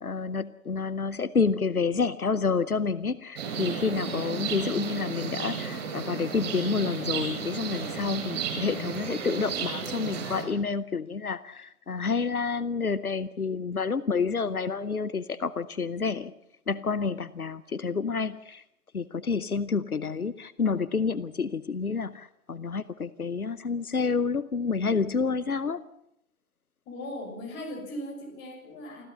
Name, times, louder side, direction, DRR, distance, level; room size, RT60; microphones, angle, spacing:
voice 1, 0.0-16.3 16.7-18.6 18.9-25.8, left 5 dB, 90° left, 15 dB, 0.8 m, -29 dB
sound 1, 3.4-10.4, right 6 dB, 45° right, 8.0 m, -33 dB
voice 2, 26.9-29.0, equal, 25° left, 2 dB, 6.3 m, -38 dB
25.0 x 15.5 x 6.9 m, 0.78 s
figure-of-eight pair, 120°, 42 cm